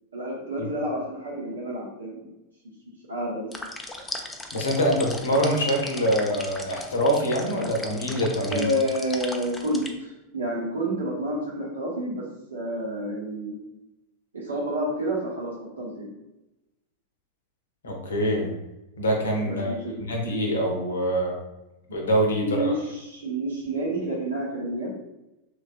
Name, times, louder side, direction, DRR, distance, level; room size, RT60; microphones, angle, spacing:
voice 1, 0.1-2.3 3.1-3.5 8.5-12.2 12.5-13.6 14.3-16.1 19.4-20.0 22.4-24.9, right 1 dB, 75° right, -4 dB, 0.9 m, -29 dB
sound 1, 3.5-9.9, left 2 dB, 10° left, 0.3 m, -38 dB
voice 2, 4.5-8.7 17.8-18.5 19.0-19.7 20.1-21.4 21.9-22.7, equal, 70° left, 1 dB, 0.7 m, -24 dB
3.1 x 2.4 x 2.5 m, 0.96 s
figure-of-eight pair, 90°, 0 cm